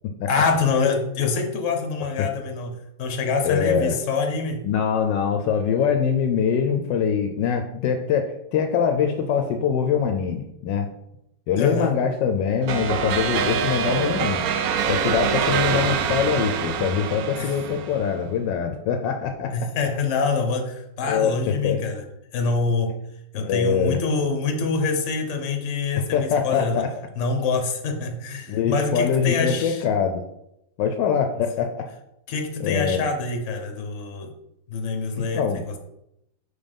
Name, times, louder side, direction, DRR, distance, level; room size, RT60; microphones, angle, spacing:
voice 1, 0.3-4.7 11.6-12.0 17.4-17.5 19.5-22.0 22.3-23.0 23.3-26.8 27.2-29.8 32.3-34.3 34.7-35.8, left 4 dB, 50° left, 4 dB, 1.1 m, -25 dB
voice 2, 3.4-3.9 4.6-10.9 11.5-14.4 14.9-19.7 21.1-21.4 21.6-21.8 23.3-24.0 26.1-26.9 28.5-30.2 30.8-31.8 32.6-33.0 35.3-35.6, left 7 dB, 75° left, 5 dB, 1.2 m, -23 dB
sound 1, 12.7-18.2, right 7 dB, 85° right, 0.7 m, -25 dB
5.3 x 4.0 x 5.3 m, 0.82 s
omnidirectional pair, 2.1 m